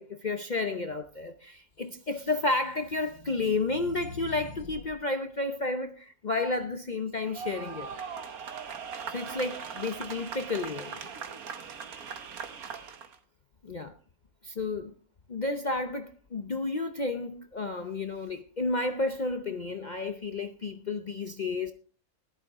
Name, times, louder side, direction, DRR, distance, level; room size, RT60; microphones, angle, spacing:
voice 1, 0.0-7.9 9.1-11.1 13.6-13.9 14.4-14.9 15.3-21.7, left 3 dB, 40° left, 0.7 m, -31 dB
sound 1, 2.0-5.0, left 4 dB, 70° left, 2.2 m, -46 dB
sound 2, 7.2-13.2, right 6 dB, 75° right, 1.6 m, -40 dB
14.5 x 11.5 x 3.6 m
omnidirectional pair, 1.5 m